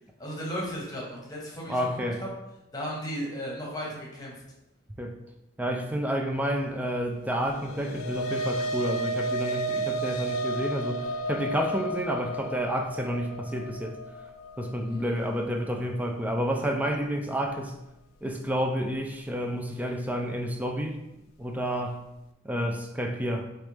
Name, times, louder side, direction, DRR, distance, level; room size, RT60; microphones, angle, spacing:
voice 1, 0.2-2.3 2.7-4.3 14.9-15.1, equal, 20° left, -3 dB, 1.0 m, -35 dB
voice 2, 1.7-2.2 5.0-5.1 5.6-14.0 14.6-17.8 18.2-21.0 21.4-22.0 22.4-23.5, equal, 10° right, 3 dB, 0.3 m, -30 dB
sound 1, 7.4-16.0, right 1 dB, 85° left, 0.4 m, -32 dB
4.9 x 3.0 x 3.2 m, 0.91 s
head